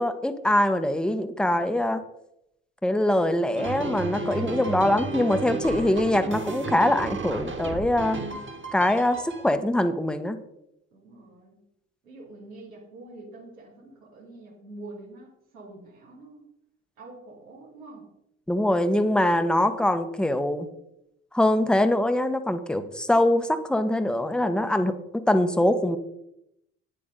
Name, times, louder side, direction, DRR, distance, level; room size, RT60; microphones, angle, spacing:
voice 1, 0.0-2.0 2.8-8.2 8.7-10.4 18.5-20.7 21.3-25.0 25.3-26.0, left 1 dB, ahead, 9 dB, 1.1 m, -23 dB
sound 1, 3.5-9.5, right 4 dB, 30° right, 1.9 m, -33 dB
voice 2, 5.7-6.0 10.9-11.6 12.0-16.5 17.0-18.1, right 2 dB, 85° right, -4 dB, 2.7 m, -46 dB
11.0 x 9.9 x 3.8 m, 0.81 s
figure-of-eight pair, 50°, 40 cm